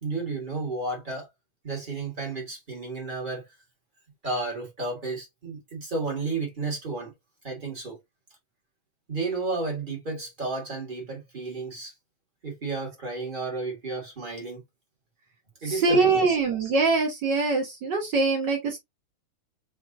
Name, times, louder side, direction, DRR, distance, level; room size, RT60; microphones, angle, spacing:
voice 1, 0.0-1.3 1.6-3.5 4.2-7.1 7.4-8.0 9.1-11.9 12.4-14.6 15.6-16.4, right 3 dB, 35° right, 0.8 m, -32 dB
voice 2, 15.7-18.8, right 4 dB, 65° right, 1.1 m, -23 dB
6.3 x 2.5 x 2.5 m
omnidirectional pair, 3.5 m